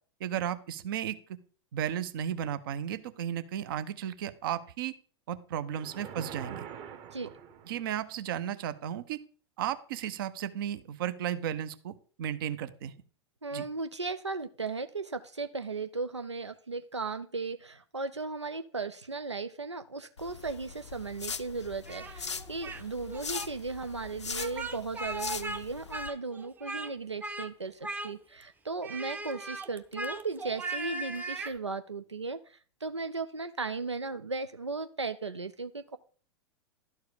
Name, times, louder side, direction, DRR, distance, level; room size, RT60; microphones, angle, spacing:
voice 1, 0.2-1.2 1.7-4.9 5.3-6.6 7.7-9.2 9.6-11.9 12.2-12.9 13.5-13.6, right 10 dB, 50° right, 13 dB, 0.8 m, -34 dB
sound 1, 5.7-8.0, right 8 dB, 35° right, 1.2 m, -44 dB
voice 2, 13.4-36.0, right 4 dB, 90° right, 10 dB, 0.5 m, -36 dB
sound 2, 20.2-26.1, left 5 dB, 80° left, 0.5 m, -41 dB
Speech, 21.9-22.8 23.1-23.5 24.3-25.6 25.9-26.9 27.2-27.5 27.8-28.4 28.8-31.6, right 2 dB, 10° right, 0.7 m, -38 dB
12.0 x 4.7 x 6.6 m, 0.43 s
figure-of-eight pair, 95°, 14 cm